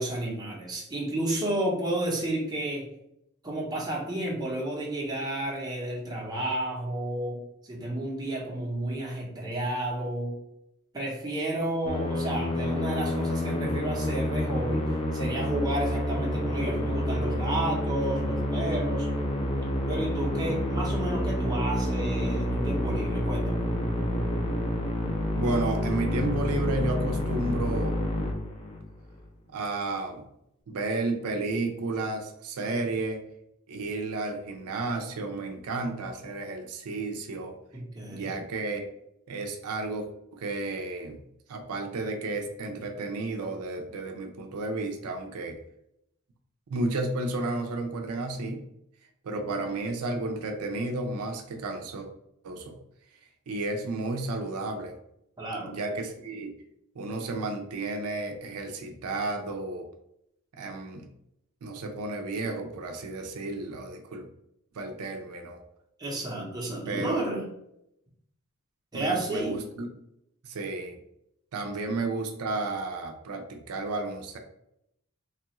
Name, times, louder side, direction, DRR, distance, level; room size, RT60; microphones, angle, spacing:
voice 1, 0.0-2.9 3.4-10.4 10.9-19.1 19.9-23.6 37.7-38.4 55.4-55.8 66.0-67.4 68.9-69.6, right 1 dB, 15° right, -3 dB, 0.7 m, -31 dB
Musical instrument, 11.9-29.0, left 1 dB, 25° left, 0.5 m, -28 dB
voice 2, 25.4-28.0 29.5-30.2 30.7-33.2 33.7-37.5 38.1-38.8 39.3-41.2 41.5-45.6 46.7-48.6 49.2-52.1 52.4-52.8 53.5-54.9 55.7-56.5 57.0-59.9 60.5-61.1 61.6-64.3 64.7-65.6 66.9-67.2 68.9-69.9 70.4-71.0 71.5-74.4, right 2 dB, 85° right, 4 dB, 0.5 m, -32 dB
3.1 x 2.3 x 2.9 m, 0.80 s
head